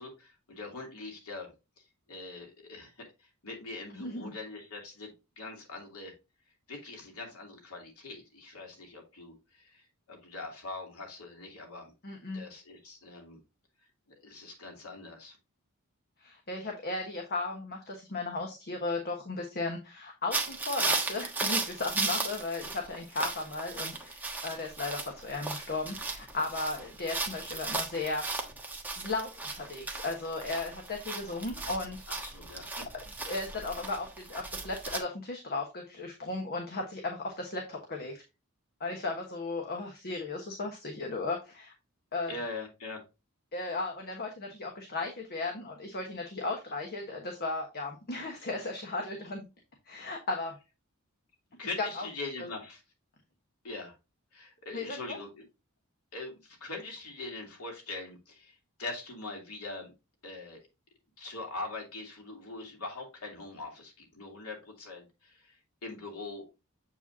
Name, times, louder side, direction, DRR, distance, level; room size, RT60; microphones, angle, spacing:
voice 1, 0.0-6.1 6.7-9.8 10.1-11.9 12.3-13.4 14.1-15.4 16.6-16.7 32.1-32.9 42.3-43.0 51.6-52.8 53.6-53.9 54.3-55.5 56.1-59.9 60.2-60.6 61.2-65.6 65.8-66.5, left 3 dB, 85° left, 1 dB, 2.7 m, -42 dB
voice 2, 3.9-4.3 12.0-12.4 16.2-28.2 29.0-32.0 33.3-38.2 38.8-41.7 42.1-42.3 43.5-49.5 49.9-50.5 51.8-52.1 54.7-55.2, left 3 dB, 45° left, 2 dB, 1.2 m, -35 dB
sound 1, 20.3-35.0, right 3 dB, 10° right, 1.2 m, -36 dB
7.8 x 5.0 x 2.7 m, 0.26 s
head